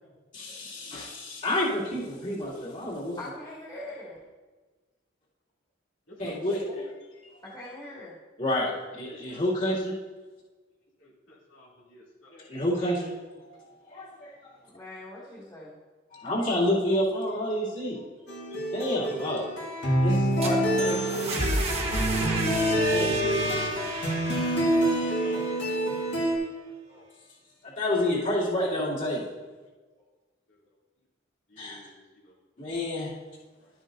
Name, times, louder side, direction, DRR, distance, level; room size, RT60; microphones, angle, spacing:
voice 1, 0.3-3.2 6.2-6.6 8.4-10.0 12.5-13.1 13.4-14.5 16.1-18.0 18.7-19.4 20.0-21.3 22.9-23.3 25.2-25.3 27.6-29.2 31.6-31.8 32.6-33.1, left 1 dB, 40° left, -8 dB, 2.7 m, -29 dB
voice 2, 3.2-4.2 7.4-8.2 14.6-15.8, left 1 dB, 20° left, -7 dB, 2.1 m, -42 dB
voice 3, 6.1-6.9 9.1-9.4 9.7-9.8 11.0-12.5 22.5-24.2 24.9-25.6 26.4-27.1 30.0-30.1 30.5-30.6 31.5-32.3 33.6-33.7, left 1 dB, 75° left, -6 dB, 2.8 m, -50 dB
sound 1, 18.3-26.4, right 1 dB, 60° left, 1.9 m, -27 dB
sound 2, 20.1-26.0, right 1 dB, 30° right, 1.3 m, -31 dB
12.5 x 8.9 x 2.7 m, 1.3 s
head